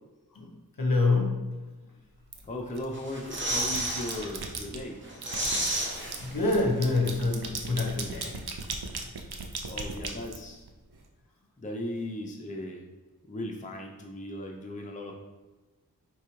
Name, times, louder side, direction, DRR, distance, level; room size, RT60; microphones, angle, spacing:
voice 1, 0.8-1.5 6.2-8.4, left 3 dB, 60° left, 1 dB, 0.8 m, -26 dB
sound 1, 2.3-2.9 3.2-4.8 5.2-11.0, right 4 dB, 75° right, 0.6 m, -38 dB
voice 2, 2.5-5.0 9.7-10.7 11.6-12.8 13.3-15.1, left 1 dB, 20° left, 0 dB, 0.5 m, -37 dB
sound 2, 2.9-4.2 4.6-4.7 5.0-6.8 7.0-7.1, right 1 dB, 30° right, 1.0 m, -31 dB
4.6 x 3.3 x 3.1 m, 1.2 s
wide cardioid pair, 50°, 38 cm